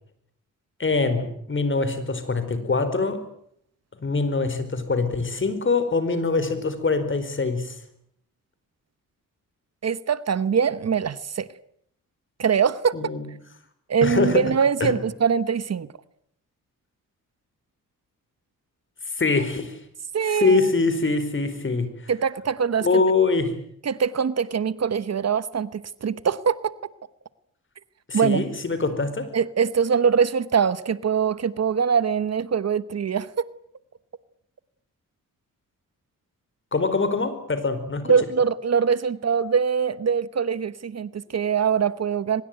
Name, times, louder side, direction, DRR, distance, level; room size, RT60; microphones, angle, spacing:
voice 1, 0.8-3.2 4.0-7.8 12.9-13.2 14.0-14.4 14.8-14.9 19.2-19.8 20.3-22.1 22.8-23.5 28.1-29.3 36.7-38.1, left 3 dB, 35° left, 11 dB, 4.6 m, -23 dB
voice 2, 9.8-11.5 12.4-13.0 13.9-15.9 20.1-20.7 22.1-23.0 23.8-26.7 28.1-28.4 29.3-33.5 38.1-42.4, right 6 dB, 50° right, 16 dB, 1.1 m, -23 dB
24.0 x 21.0 x 9.1 m, 0.70 s
cardioid pair, 100°, 33 cm